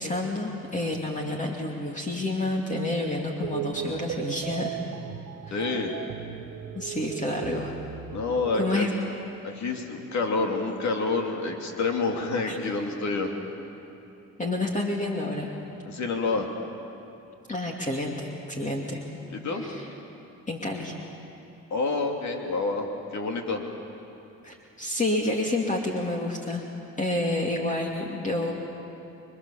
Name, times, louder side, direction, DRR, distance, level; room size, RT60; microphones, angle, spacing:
voice 1, 0.0-4.8 5.5-5.7 6.7-7.8 8.5-8.9 12.5-12.6 14.4-15.5 17.5-19.0 19.5-19.9 20.5-20.9 24.4-26.6 27.0-28.5, left 2 dB, 25° left, 0 dB, 2.6 m, -29 dB
sound 1, 3.4-8.7, right 11 dB, 80° right, 1.0 m, -37 dB
voice 2, 5.5-6.0 8.1-8.9 9.4-13.3 15.8-16.5 19.3-19.6 21.7-23.6, left 3 dB, 65° left, 2 dB, 3.0 m, -28 dB
28.0 x 23.5 x 7.3 m, 2.7 s
cardioid pair, 90°, 30 cm